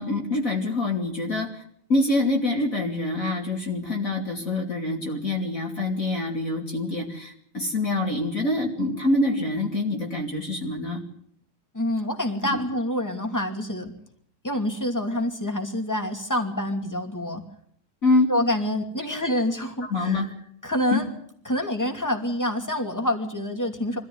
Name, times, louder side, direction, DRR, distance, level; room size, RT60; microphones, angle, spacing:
voice 1, 0.0-1.6 1.9-11.0 12.5-12.6 18.0-18.3 19.8-20.3 20.9-21.0, left 2 dB, 40° left, 0 dB, 3.1 m, -25 dB
voice 2, 11.7-13.9 14.4-17.4 18.3-20.3 20.6-21.1 21.4-24.0, left 1 dB, 10° left, 5 dB, 2.6 m, -27 dB
24.5 x 14.5 x 9.6 m, 0.67 s
omnidirectional pair, 2.2 m